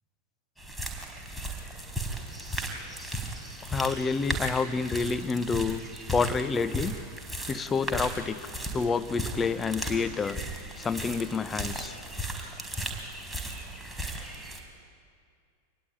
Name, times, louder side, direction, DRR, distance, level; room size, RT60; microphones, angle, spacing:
sound 1, 0.6-14.6, right 1 dB, ahead, 4.5 m, -36 dB
voice 1, 3.7-5.8 6.1-6.9 7.5-8.4 8.7-10.4 10.8-12.0, left 5 dB, 20° left, 13 dB, 1.0 m, -28 dB
26.5 x 21.5 x 9.4 m, 2.2 s
figure-of-eight pair, 90°, 0 cm